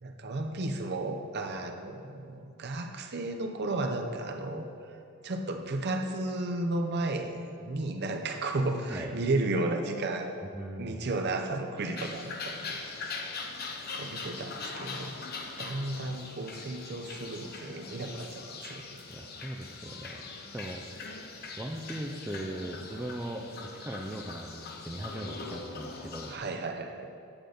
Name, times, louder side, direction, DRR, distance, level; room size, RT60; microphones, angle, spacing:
voice 1, 0.0-4.7 5.2-10.3 10.8-13.1 13.9-15.1 15.6-19.0 26.3-27.1, right 2 dB, 45° right, 5 dB, 0.6 m, -33 dB
voice 2, 10.5-11.1 19.1-20.2 20.5-21.1 21.6-23.4 23.8-26.3, right 1 dB, 10° right, 0 dB, 0.3 m, -39 dB
sound 1, 12.0-26.4, left 4 dB, 45° left, 0.6 m, -41 dB
8.8 x 3.9 x 6.6 m, 2.6 s
head